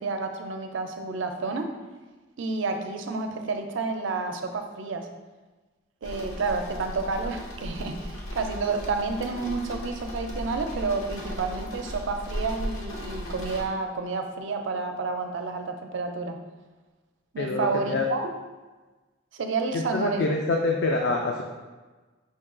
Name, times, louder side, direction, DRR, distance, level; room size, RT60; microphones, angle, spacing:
voice 1, 0.0-1.7 2.4-5.1 6.0-16.4 17.3-18.3 19.3-20.3, right 4 dB, 65° right, 5 dB, 0.4 m, -30 dB
sound 1, 6.0-13.7, equal, 85° left, 0.8 m, -36 dB
voice 2, 17.4-18.1 19.7-21.4, left 3 dB, 55° left, 1 dB, 0.3 m, -26 dB
5.3 x 2.3 x 3.7 m, 1.3 s
head